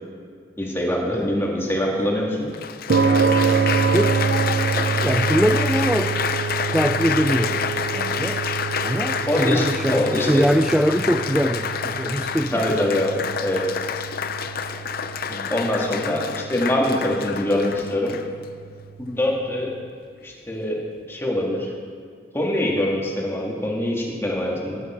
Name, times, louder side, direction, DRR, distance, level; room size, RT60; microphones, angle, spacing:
voice 1, 0.6-2.5 9.3-10.4 12.5-13.7 15.5-18.2 19.0-19.7 20.2-20.8 21.1-21.7 22.3-24.8, left 1 dB, 15° left, -2 dB, 2.1 m, -24 dB
Applause, 1.8-1.9 2.5-18.5 19.2-19.5, left 7 dB, 55° left, 0.6 m, -28 dB
sound 1, 2.9-19.4, right 5 dB, 60° right, 0.5 m, -27 dB
voice 2, 5.0-6.2 6.7-8.4 8.8-12.8 15.3-15.5 15.9-16.0, equal, 5° right, 7 dB, 0.3 m, -23 dB
18.0 x 11.5 x 4.5 m, 2.1 s
head